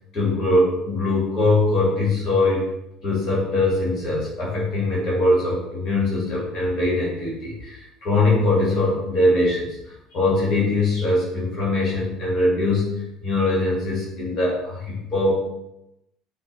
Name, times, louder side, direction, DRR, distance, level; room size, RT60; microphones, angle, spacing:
voice 1, 0.1-2.6 3.0-9.8 10.1-15.4, left 2 dB, 50° left, -6 dB, 2.2 m, -22 dB
5.2 x 4.5 x 4.1 m, 0.88 s
figure-of-eight pair, 60°, 0 cm